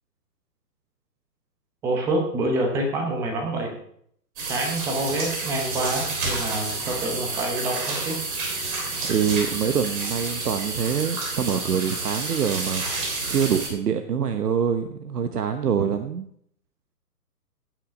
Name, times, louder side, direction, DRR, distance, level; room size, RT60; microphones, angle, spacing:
voice 1, 1.8-3.7 4.5-8.2, right 1 dB, 5° right, 3 dB, 0.8 m, -27 dB
sound 1, 4.4-13.7, right 3 dB, 30° right, 3.4 m, -30 dB
voice 2, 8.6-12.8 13.3-16.3, right 7 dB, 70° right, 8 dB, 1.0 m, -25 dB
16.5 x 6.1 x 5.2 m, 0.69 s
hypercardioid pair, 145°, 49 cm